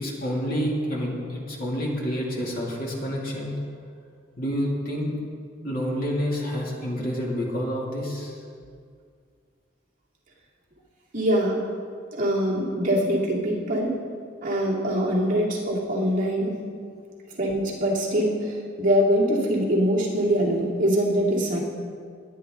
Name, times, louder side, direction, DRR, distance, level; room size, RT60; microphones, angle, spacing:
voice 1, 0.0-3.5 4.4-5.1 5.6-8.3, equal, 45° left, -3 dB, 2.6 m, -28 dB
voice 2, 11.1-11.6 12.2-14.0 14.4-16.6 17.4-21.6, equal, 40° right, -5 dB, 2.4 m, -23 dB
20.0 x 9.7 x 3.8 m, 2.2 s
head